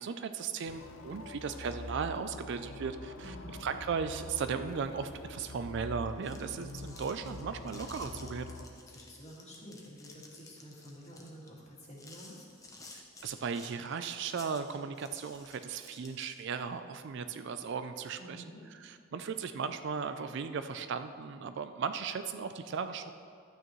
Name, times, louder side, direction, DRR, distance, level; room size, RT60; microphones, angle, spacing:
voice 1, 0.0-8.5 12.9-18.4 18.7-23.2, right 6 dB, 55° right, 10 dB, 0.4 m, -37 dB
sound 1, 0.7-8.7, left 2 dB, 80° left, 0.6 m, -45 dB
voice 2, 3.2-3.5 8.8-12.5 18.2-18.6, equal, 30° left, -4 dB, 2.0 m, -50 dB
sound 2, 6.1-16.6, left 2 dB, 15° left, 0.8 m, -54 dB
12.5 x 9.0 x 3.1 m, 2.4 s
head